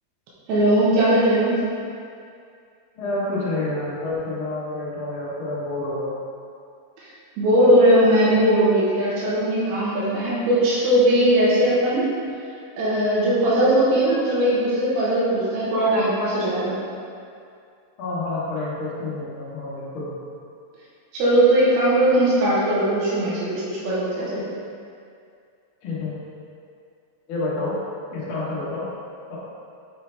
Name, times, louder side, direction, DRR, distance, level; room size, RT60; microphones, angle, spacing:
voice 1, 0.5-1.6 7.4-12.1 12.8-16.8 21.1-24.4, right 1 dB, 75° right, -8 dB, 3.1 m, -19 dB
voice 2, 2.9-6.2 18.0-20.2 25.8-26.1 27.3-27.7 28.1-28.8 29.3-29.4, left 2 dB, 80° left, -8 dB, 1.1 m, -28 dB
7.1 x 4.4 x 3.4 m, 2.4 s
omnidirectional pair, 4.7 m